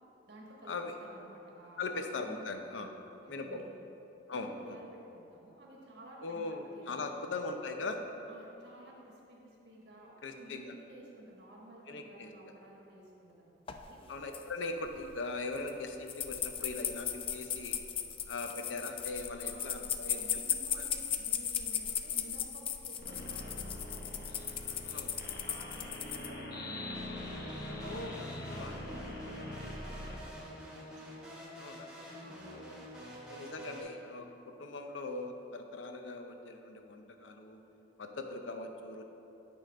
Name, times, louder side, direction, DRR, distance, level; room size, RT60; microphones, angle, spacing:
voice 1, 0.3-0.7 1.0-2.0 2.3-2.4 2.7-3.0 3.2-3.7 4.3-7.2 8.3-14.0 19.4-24.3 25.2-30.7 32.2-32.6, right 1 dB, 60° right, -2 dB, 1.3 m, -53 dB
voice 2, 1.8-2.9 3.3-3.6 4.3-4.5 6.2-8.0 10.2-10.7 11.9-12.3 14.1-17.8 18.3-20.4 20.7-20.8 24.7-25.4 27.8-28.7 31.6-31.9 32.5-32.9 33.3-37.6 38.0-39.0, left 3 dB, 85° left, 5 dB, 0.6 m, -40 dB
sound 1, 13.7-13.8 14.1-14.4 14.9-15.1 15.6-15.7 16.1-26.3, left 9 dB, 30° left, 0.3 m, -36 dB
sound 2, 23.0-30.2, left 1 dB, 55° left, 1.0 m, -43 dB
sound 3, 26.9-33.8, equal, 5° right, 1.1 m, -47 dB
9.1 x 3.8 x 5.1 m, 3.0 s
head